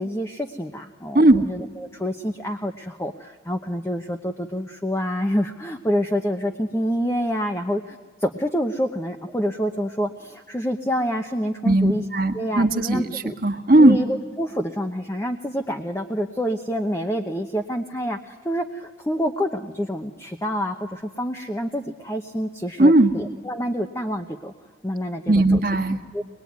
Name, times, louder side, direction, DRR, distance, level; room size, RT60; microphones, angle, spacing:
voice 1, 0.0-12.0 12.3-13.3 13.8-24.5 24.8-25.6 26.1-26.2, equal, 15° left, 5 dB, 0.9 m, -27 dB
voice 2, 1.1-1.5 11.6-13.0 13.4-14.0 22.8-23.1 25.3-26.0, right 1 dB, 55° right, 4 dB, 1.6 m, -17 dB
24.0 x 21.0 x 9.5 m, 1.5 s
head